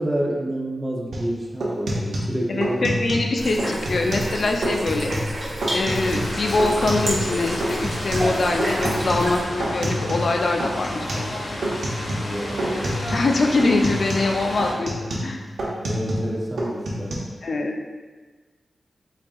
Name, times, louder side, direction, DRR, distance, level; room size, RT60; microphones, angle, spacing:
voice 1, 0.0-3.0 12.2-13.0 15.9-17.2, right 1 dB, 15° right, -3 dB, 0.6 m, -29 dB
sound 1, 1.1-1.3 1.6-3.3 3.6-4.3 4.6-5.3 5.6-7.3 7.6-10.3 10.6-11.3 11.6-12.3 12.6-13.3 13.6-16.3 16.6-17.1, right 1 dB, 80° right, 0.8 m, -27 dB
voice 2, 2.5-5.1 5.7-11.2 13.1-15.0 15.2-15.4 17.4-17.7, left 2 dB, 60° left, 2 dB, 0.4 m, -23 dB
sound 2, 3.4-9.4, equal, 40° right, 1.4 m, -31 dB
sound 3, 5.9-14.7, left 1 dB, 90° left, 0.9 m, -32 dB
4.1 x 3.6 x 2.3 m, 1.3 s
wide cardioid pair, 105°, 0 cm